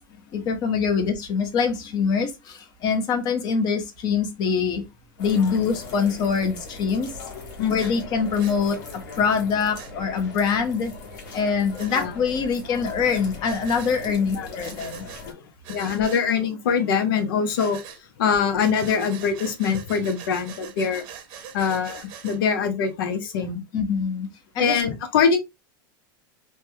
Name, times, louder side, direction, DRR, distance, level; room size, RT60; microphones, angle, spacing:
voice 1, 0.1-4.9 5.2-7.2 7.7-10.9 11.3-15.0 23.7-24.3 24.5-24.8, left 6 dB, 35° left, 0.7 m, -24 dB
sound 1, 5.2-15.3, left 3 dB, 65° left, 1.4 m, -39 dB
voice 2, 7.6-7.9 11.9-12.1 14.4-14.5 15.7-17.8 18.2-21.0 21.5-23.6 24.6-25.4, left 6 dB, 80° left, 0.8 m, -23 dB
Breathing, 7.8-7.9 8.4-8.6 9.7-9.9 11.8-12.1 13.4-13.9 14.6-15.2 15.6-16.2 17.6-18.0 18.6-22.4, right 8 dB, 50° right, 0.8 m, -42 dB
3.3 x 2.2 x 2.6 m
supercardioid pair, 135°, 11 cm